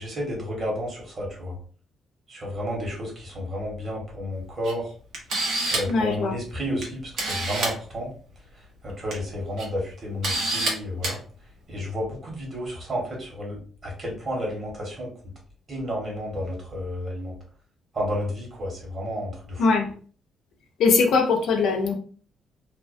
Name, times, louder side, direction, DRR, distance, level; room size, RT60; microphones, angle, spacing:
voice 1, 0.0-1.5 2.3-4.9 5.7-8.1 8.8-11.2 11.7-15.1 15.7-17.3 17.9-19.6, equal, 40° right, 1.5 m, -31 dB
Camera, 4.6-4.7 5.1-6.0 6.8-6.9 7.2-7.7 8.9-9.1 9.6-9.7 10.2-10.7 11.0-11.1, right 2 dB, 75° right, 1.1 m, -26 dB
voice 2, 5.9-6.3 19.6-19.9 20.8-21.9, left 4 dB, 75° left, 0.6 m, -21 dB
2.8 x 2.2 x 2.6 m
cardioid pair, 90°, 0 cm